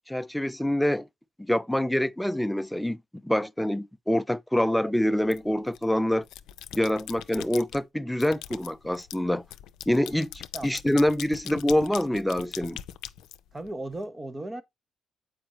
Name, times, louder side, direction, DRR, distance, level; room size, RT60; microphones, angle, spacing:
voice 1, 0.1-1.1 1.5-3.0 3.2-6.3 6.7-9.4 9.9-12.8, left 1 dB, 5° left, 0.4 m, -26 dB
sound 1, 5.3-5.8 6.2-7.8 8.2-14.0, left 12 dB, 90° left, 0.4 m, -41 dB
voice 2, 13.5-14.6, right 1 dB, 20° right, 0.9 m, -36 dB
7.5 x 5.1 x 3.0 m
cardioid pair, 90°, 0 cm